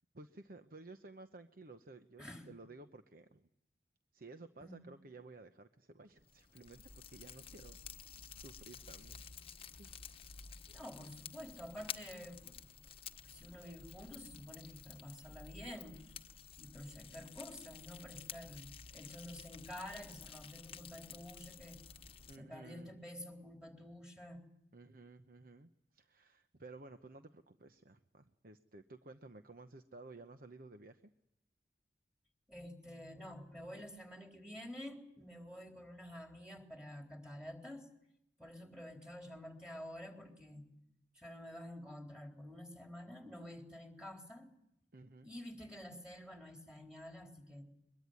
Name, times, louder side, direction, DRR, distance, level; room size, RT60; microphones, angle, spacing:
voice 1, 0.1-3.5 4.1-7.8 8.4-9.2 9.8-9.9 22.3-22.9 24.7-31.0 44.9-45.3, right 3 dB, 50° right, 8 dB, 0.9 m, -55 dB
Fire, 6.2-22.4, left 7 dB, 30° left, 1.1 m, -52 dB
voice 2, 10.7-12.5 13.2-16.0 16.6-21.8 22.4-24.4 32.5-37.9 38.4-40.7 41.1-44.5 45.2-47.7, left 1 dB, 5° right, 3 dB, 3.9 m, -49 dB
23.0 x 22.0 x 9.6 m, 0.81 s
head